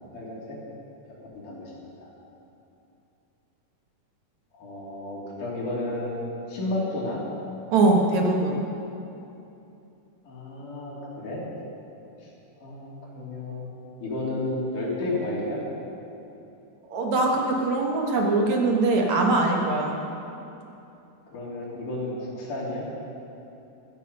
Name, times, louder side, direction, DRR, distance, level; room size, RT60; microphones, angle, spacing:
voice 1, 0.1-0.6 1.3-1.7 2.0-2.1 4.5-7.2 10.3-11.4 12.2-12.3 12.6-13.7 14.0-15.6 21.3-22.9, left 2 dB, 70° left, -5 dB, 4.6 m, -32 dB
voice 2, 7.7-8.6 16.9-19.9, right 2 dB, 65° right, 0 dB, 2.7 m, -22 dB
15.0 x 14.0 x 5.5 m, 2.8 s
omnidirectional pair, 3.7 m